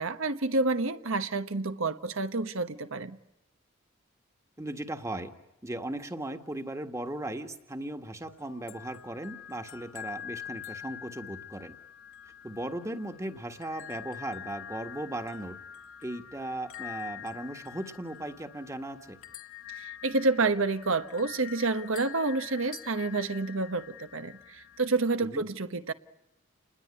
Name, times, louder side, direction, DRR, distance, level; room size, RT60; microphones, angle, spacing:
voice 1, 0.0-3.2 19.8-25.9, right 3 dB, 65° right, 1.2 m, -29 dB
voice 2, 4.6-5.3 5.6-11.8 12.4-15.6 16.0-19.2 25.2-25.4, right 1 dB, 15° right, 1.6 m, -37 dB
sound 1, 8.3-25.2, left 10 dB, 65° left, 2.0 m, -46 dB
29.5 x 20.5 x 9.8 m
head